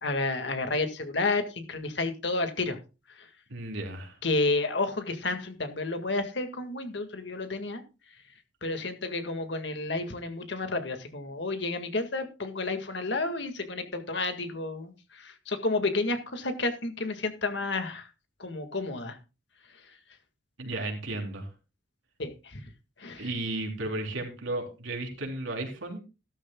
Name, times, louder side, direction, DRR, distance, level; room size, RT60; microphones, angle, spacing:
voice 1, 0.0-2.8 3.1-3.3 4.2-7.8 8.1-8.2 8.6-18.1 18.4-19.2 19.7-20.0 22.2-22.7 23.0-23.3, left 3 dB, 65° left, 7 dB, 1.9 m, -31 dB
voice 2, 3.5-4.2 20.6-21.5 23.2-26.0, right 2 dB, 85° right, 1 dB, 3.7 m, -34 dB
14.0 x 13.0 x 2.3 m, 0.30 s
head